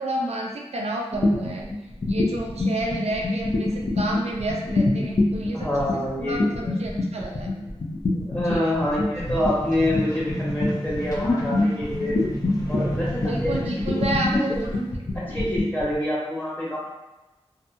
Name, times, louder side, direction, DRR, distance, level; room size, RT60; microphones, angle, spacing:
voice 1, 0.0-1.7 2.1-7.5 8.4-8.9 13.3-14.9, right 1 dB, 75° right, -1 dB, 0.4 m, -30 dB
sound 1, 1.1-15.9, left 2 dB, 55° left, 0.5 m, -26 dB
voice 2, 5.5-6.8 7.6-7.7 8.1-12.2 12.7-13.5 13.8-14.0 15.1-16.8, left 1 dB, 15° left, -7 dB, 1.3 m, -27 dB
sound 2, 9.1-14.0 14.6-14.7, equal, 30° left, 1.0 m, -31 dB
2.7 x 2.2 x 2.6 m, 1.0 s
cardioid pair, 45°, 11 cm